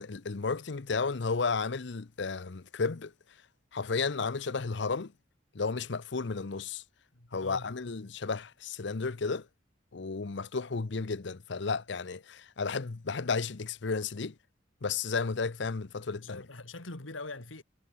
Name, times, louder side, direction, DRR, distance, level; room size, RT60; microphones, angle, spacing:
voice 1, 0.0-3.1 3.7-5.1 5.5-6.8 7.3-9.5 9.9-14.3 14.8-16.4, left 4 dB, 60° left, 0.7 m, -33 dB
voice 2, 7.1-7.7 16.2-17.6, left 2 dB, 85° left, 2.6 m, -43 dB
head